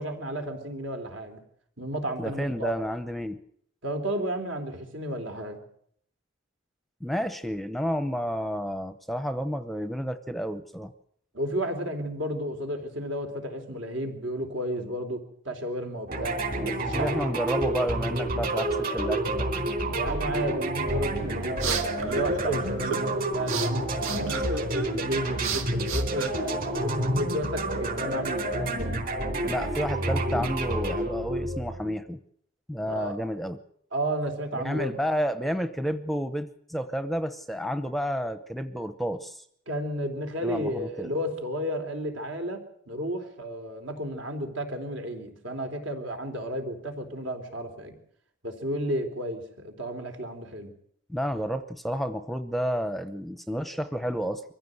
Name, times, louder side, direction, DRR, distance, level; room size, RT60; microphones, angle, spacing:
voice 1, 0.0-1.4 1.8-2.7 3.8-5.6 11.3-16.4 16.6-17.3 19.9-28.9 29.4-29.5 32.8-33.2 33.9-35.0 39.7-48.0 48.4-50.7, right 1 dB, 70° right, 5 dB, 3.7 m, -32 dB
voice 2, 2.2-3.4 7.0-10.9 16.8-19.5 29.5-32.2 32.7-33.6 34.6-39.4 40.4-41.1 51.1-54.4, equal, ahead, 11 dB, 0.8 m, -30 dB
sound 1, 16.1-32.0, right 1 dB, 45° right, 4.2 m, -29 dB
sound 2, 21.1-27.0, right 4 dB, 85° right, 1.9 m, -34 dB
24.0 x 15.5 x 7.9 m, 0.68 s
head